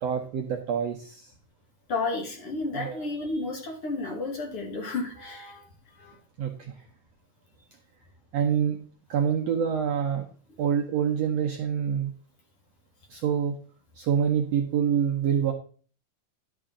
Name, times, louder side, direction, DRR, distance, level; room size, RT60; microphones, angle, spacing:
voice 1, 0.0-1.3 2.7-3.1 6.4-6.8 8.3-8.8 9.1-10.2 10.6-12.1 13.1-13.6 13.9-15.5, right 8 dB, 70° right, 1 dB, 1.6 m, -26 dB
voice 2, 1.9-5.6 6.0-6.1, left 3 dB, 45° left, 0 dB, 2.4 m, -32 dB
11.5 x 7.0 x 3.7 m, 0.41 s
omnidirectional pair, 4.0 m